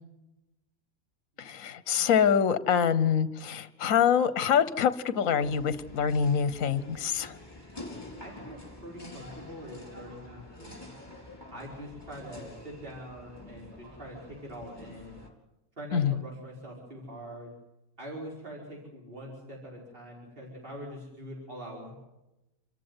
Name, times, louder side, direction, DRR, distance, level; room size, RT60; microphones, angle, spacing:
voice 1, 1.4-7.3 15.9-16.1, left 7 dB, 65° left, 14 dB, 1.4 m, -25 dB
sound 1, 5.4-15.3, left 1 dB, 15° left, 4.3 m, -47 dB
voice 2, 8.2-10.9 11.5-15.3 15.8-17.5 18.0-21.9, equal, 35° right, -3 dB, 5.4 m, -43 dB
28.0 x 14.5 x 9.7 m, 0.97 s
omnidirectional pair, 1.5 m